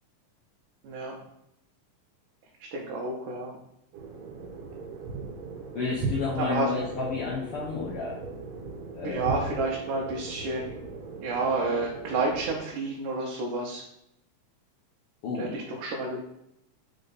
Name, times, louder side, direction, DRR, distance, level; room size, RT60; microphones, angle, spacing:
voice 1, 0.8-1.2 2.7-3.5 6.4-6.7 9.0-10.8 11.1-13.8 15.4-16.2, right 3 dB, 90° right, -3 dB, 2.4 m, -30 dB
sound 1, 3.9-12.6, right 3 dB, 65° right, 2.1 m, -38 dB
voice 2, 5.7-8.2 8.9-9.3 15.2-15.6, left 4 dB, 70° left, -5 dB, 1.4 m, -31 dB
5.3 x 4.3 x 4.0 m, 0.79 s
omnidirectional pair, 3.6 m